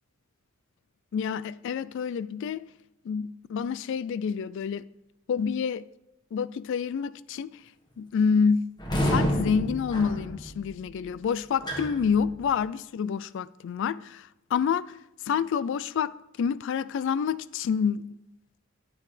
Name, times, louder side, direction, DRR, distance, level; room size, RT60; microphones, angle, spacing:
voice 1, 1.1-2.7 3.0-4.8 5.3-5.9 6.3-7.5 8.0-8.7 9.1-15.0 15.3-16.1 16.4-18.2, left 6 dB, 65° left, 0.3 m, -28 dB
sound 1, 8.8-12.7, equal, 20° left, 1.3 m, -30 dB
13.0 x 8.6 x 3.3 m
head